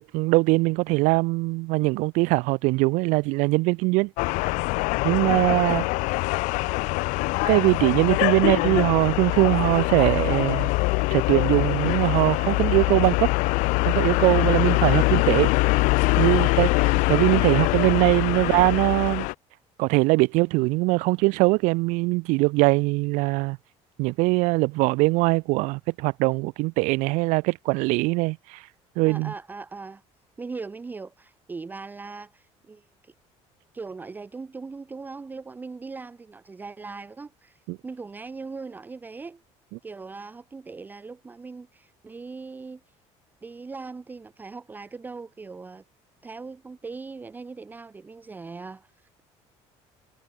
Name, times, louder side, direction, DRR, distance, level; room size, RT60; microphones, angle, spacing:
voice 1, 0.0-4.1 5.0-5.8 7.5-10.7 11.1-13.3 13.9-15.5 16.2-16.8 17.1-19.3 19.8-23.6 24.0-28.6 29.0-29.3 37.7-37.8, right 25 dB, 80° right, 0.4 m, -22 dB
sound 1, 4.2-19.3, left 25 dB, 80° left, 0.8 m, -23 dB
voice 2, 29.1-30.0 30.4-33.1 33.7-39.4 39.8-42.8 43.4-45.8 46.2-49.2, right 4 dB, 15° right, 0.8 m, -40 dB
cardioid pair, 155°, 13 cm